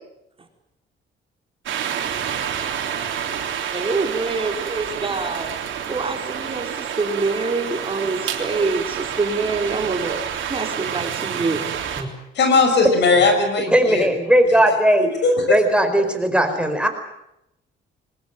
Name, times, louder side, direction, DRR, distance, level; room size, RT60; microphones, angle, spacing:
sound 1, 1.7-12.0, right 8 dB, 75° right, 3.6 m, -28 dB
voice 1, 3.7-5.5 5.9-10.2 10.5-11.7, right 3 dB, 30° right, 4.4 m, -25 dB
voice 2, 12.3-14.1 15.2-15.5, left 3 dB, 65° left, 6.4 m, -18 dB
voice 3, 13.7-15.1 15.5-16.9, right 1 dB, 5° right, 4.6 m, -17 dB
22.0 x 20.0 x 9.1 m
cardioid pair, 90°, 20 cm